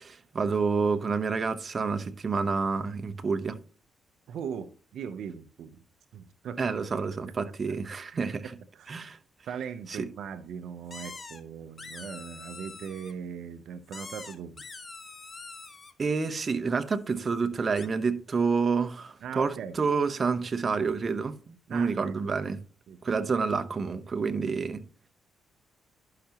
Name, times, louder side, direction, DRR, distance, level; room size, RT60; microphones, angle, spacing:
voice 1, 0.0-3.6 6.6-8.5 8.9-9.2 9.9-10.1 16.0-22.6 23.0-24.8, right 5 dB, 40° right, 0.8 m, -28 dB
voice 2, 4.3-5.8 6.1-6.7 7.3-7.4 8.1-8.2 8.7-8.9 9.5-14.6 19.2-19.8 21.7-22.5 22.9-23.1, right 7 dB, 75° right, 0.6 m, -39 dB
sound 1, 10.9-11.4 11.8-13.1 13.9-15.9 17.8-17.9, left 4 dB, 35° left, 1.0 m, -44 dB
11.5 x 5.8 x 2.8 m
cardioid pair, 70°, 0 cm